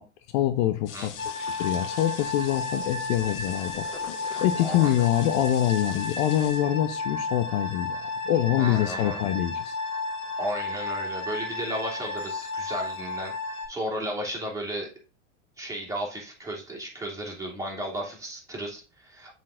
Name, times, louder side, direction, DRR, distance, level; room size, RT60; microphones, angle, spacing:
voice 1, 0.3-1.1 1.4-3.9 4.4-9.7, left 12 dB, 55° left, 10 dB, 0.8 m, -25 dB
sound 1, 0.9-7.0, left 8 dB, 75° left, 1.2 m, -43 dB
sound 2, 1.2-13.7, left 3 dB, 35° left, 4.3 m, -33 dB
voice 2, 4.6-4.9 8.6-9.2 10.4-14.9 15.6-19.3, right 1 dB, 10° right, -2 dB, 3.2 m, -34 dB
7.3 x 4.5 x 3.8 m, 0.33 s
hypercardioid pair, 95°, 36 cm